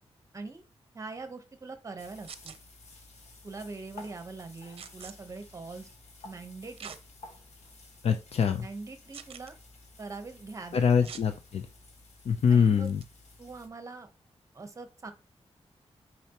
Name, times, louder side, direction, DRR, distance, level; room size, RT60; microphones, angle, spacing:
voice 1, 0.9-2.6 3.4-5.9 6.2-6.9 8.6-9.6 10.0-11.1 12.5-12.9 13.4-14.1 14.5-15.1, right 3 dB, 30° right, 8 dB, 1.0 m, -42 dB
sound 1, 2.0-13.7, left 2 dB, 80° left, 1.8 m, -53 dB
sound 2, 2.2-2.6 4.8-5.1 6.8-7.0 7.6-7.7 9.1-9.5 11.0-11.3 12.8-13.0, right 7 dB, 60° right, 0.6 m, -44 dB
voice 2, 8.0-8.7 10.7-11.7 12.2-13.0, left 6 dB, 65° left, 7 dB, 0.6 m, -24 dB
9.1 x 4.4 x 2.9 m, 0.29 s
wide cardioid pair, 170°, 11 cm